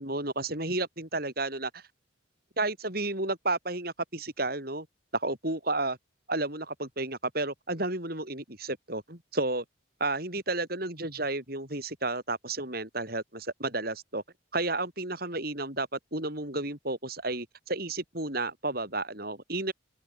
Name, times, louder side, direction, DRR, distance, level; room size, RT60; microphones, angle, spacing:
voice 1, 0.0-1.8 2.6-4.9 5.1-6.0 6.3-9.6 10.0-14.2 14.5-19.7, right 2 dB, 50° right, 7.2 m, -32 dB
open air
head